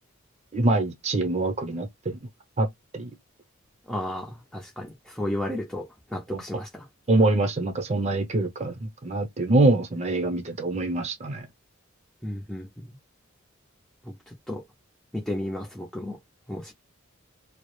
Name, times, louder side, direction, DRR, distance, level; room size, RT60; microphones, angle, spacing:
voice 1, 0.5-2.2 2.6-2.7 2.9-3.1 6.3-6.4 7.1-11.5, right 2 dB, 30° right, 0.7 m, -24 dB
voice 2, 3.9-6.9 12.2-12.9 14.0-14.6 15.1-16.2 16.5-16.7, left 1 dB, ahead, 0.5 m, -33 dB
2.3 x 2.0 x 3.0 m
head